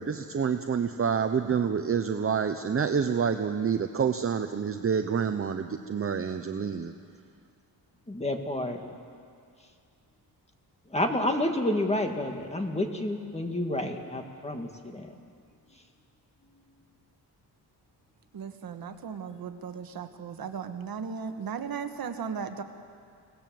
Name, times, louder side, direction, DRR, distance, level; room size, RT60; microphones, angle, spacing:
voice 1, 0.0-6.9, right 6 dB, 35° right, 7 dB, 0.8 m, -28 dB
voice 2, 8.1-8.8 10.9-15.1 15.7-15.8, left 1 dB, 15° left, 4 dB, 2.1 m, -29 dB
voice 3, 18.3-22.6, right 6 dB, 60° right, 7 dB, 1.5 m, -36 dB
28.0 x 18.5 x 7.8 m, 2.3 s
wide cardioid pair, 135°, 41 cm